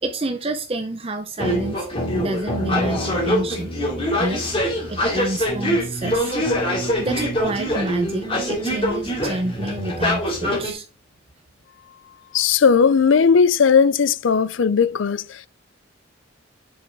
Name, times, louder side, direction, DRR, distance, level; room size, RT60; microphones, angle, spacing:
voice 1, 0.0-1.8 2.1-3.7 4.2-4.4 4.9-6.4 7.0-10.9, right 2 dB, 30° right, 0.6 m, -28 dB
sound 1, 1.4-10.7, equal, 30° left, 2.3 m, -24 dB
voice 2, 12.3-15.5, left 6 dB, 75° left, 0.5 m, -17 dB
8.0 x 6.2 x 3.5 m
head